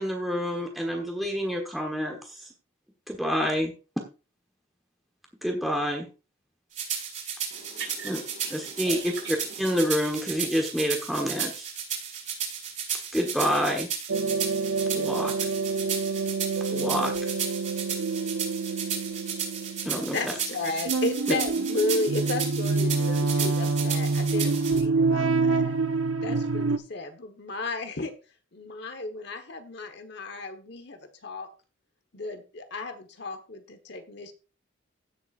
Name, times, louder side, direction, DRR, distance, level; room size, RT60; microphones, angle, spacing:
voice 1, 0.0-2.5 3.1-3.7 5.4-6.1 8.1-8.2 8.5-9.0 9.6-11.7 13.1-13.9 14.9-15.3 16.7-17.3 19.8-20.3, equal, ahead, 1.3 m, -28 dB
sound 1, 6.7-24.8, right 7 dB, 35° right, 4.5 m, -34 dB
voice 2, 7.5-9.9, right 4 dB, 55° right, 5.5 m, -42 dB
sound 2, 14.1-26.8, right 3 dB, 85° right, 0.8 m, -27 dB
voice 3, 20.1-25.7 26.2-28.1 28.5-31.5 32.1-34.3, left 2 dB, 55° left, 1.3 m, -33 dB
16.5 x 7.2 x 2.5 m
head